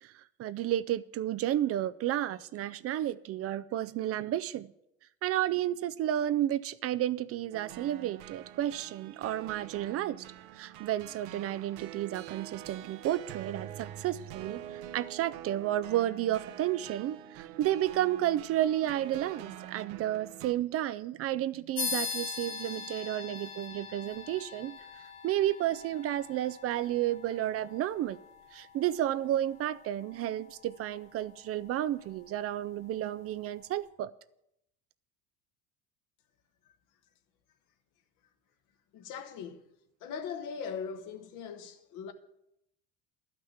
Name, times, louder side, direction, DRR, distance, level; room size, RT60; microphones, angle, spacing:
voice 1, 0.0-4.7 5.2-10.3 10.5-24.8 25.2-28.2 28.5-34.1, right 12 dB, 45° right, 0.5 m, -32 dB
sound 1, 7.5-20.5, right 12 dB, 75° right, 0.9 m, -46 dB
sound 2, 21.8-31.7, left 5 dB, 90° left, 2.2 m, -42 dB
voice 2, 38.9-39.7 40.0-42.1, left 6 dB, 65° left, 1.3 m, -40 dB
11.5 x 5.9 x 7.9 m
supercardioid pair, 90°, 34 cm